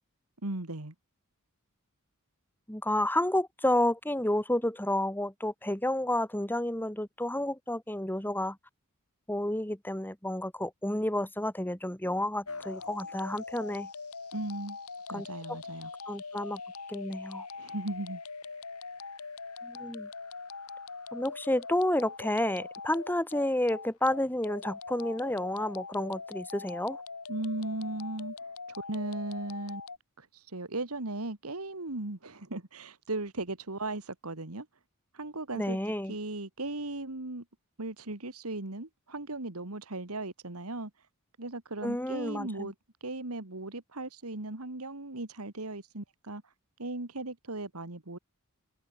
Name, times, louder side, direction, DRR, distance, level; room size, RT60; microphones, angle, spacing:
voice 1, 0.4-0.9 14.3-14.8 15.1-15.9 17.6-18.2 27.3-28.4 28.9-29.8 30.2-34.7 35.1-35.8 36.1-37.4 37.8-40.9 41.4-42.7 43.0-46.4 46.8-48.2, right 2 dB, 75° right, 2.3 m, -37 dB
voice 2, 2.7-8.6 9.3-13.9 15.1-15.6 16.1-16.6 16.9-17.5 19.6-20.1 21.1-27.0 35.6-36.1 41.8-42.7, left 1 dB, 10° left, 4.0 m, -30 dB
sound 1, 12.5-30.0, left 4 dB, 80° left, 4.0 m, -42 dB
head